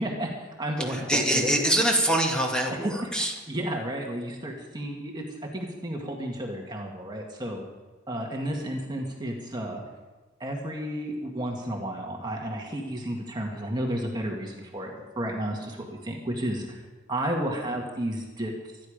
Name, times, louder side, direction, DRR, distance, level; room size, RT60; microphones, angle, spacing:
voice 1, 0.0-1.5 3.5-5.2 5.5-7.6 8.1-9.8 10.4-16.8 17.1-18.5, right 1 dB, 25° right, 0 dB, 1.9 m, -32 dB
voice 2, 0.8-3.3, right 1 dB, 5° left, 0 dB, 2.3 m, -24 dB
25.0 x 10.5 x 5.1 m, 1.3 s
head